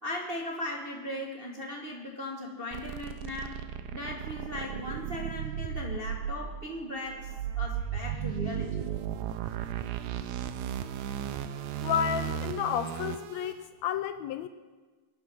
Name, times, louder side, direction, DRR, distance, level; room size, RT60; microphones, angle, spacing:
voice 1, 0.0-3.6 3.9-8.7, left 1 dB, 30° right, -1 dB, 1.1 m, -38 dB
sound 1, 2.7-13.5, right 9 dB, 75° right, 1.9 m, -35 dB
voice 2, 11.8-14.5, left 9 dB, 75° left, 10 dB, 1.8 m, -31 dB
23.5 x 9.4 x 6.3 m, 1.3 s
omnidirectional pair, 3.4 m